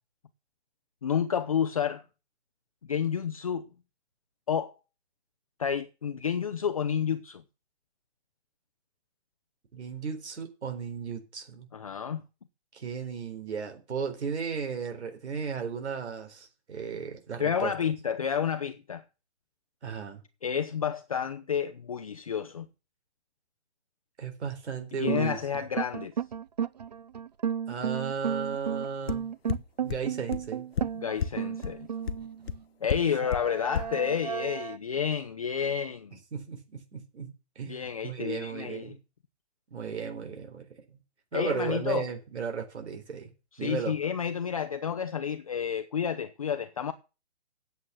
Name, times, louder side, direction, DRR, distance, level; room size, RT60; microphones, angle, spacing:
voice 1, 1.0-2.0 2.9-3.7 4.5-4.8 5.6-7.4 11.7-12.2 17.4-19.0 20.4-22.7 25.0-26.1 30.9-31.9 32.8-36.2 37.7-39.0 41.3-42.1 43.6-46.9, left 7 dB, 30° left, 0.6 m, -30 dB
voice 2, 9.7-11.7 12.7-17.7 19.8-20.2 24.2-25.4 27.7-29.2 29.8-30.7 36.3-39.0 39.7-40.8 41.3-43.3 43.6-43.9, right 6 dB, 80° right, 4.1 m, -35 dB
sound 1, 25.1-32.6 33.2-34.8, right 8 dB, 40° right, 0.5 m, -33 dB
sound 2, 29.1-29.2 29.5-29.6 29.9-30.0 30.3-30.4 30.8-30.9 31.2-31.3 31.6-31.7 32.1-32.2 32.5-32.6 32.9-33.0 33.3-33.4 33.7-33.8, left 7 dB, 65° left, 1.0 m, -28 dB
8.9 x 7.9 x 7.1 m
hypercardioid pair, 175°, 33 cm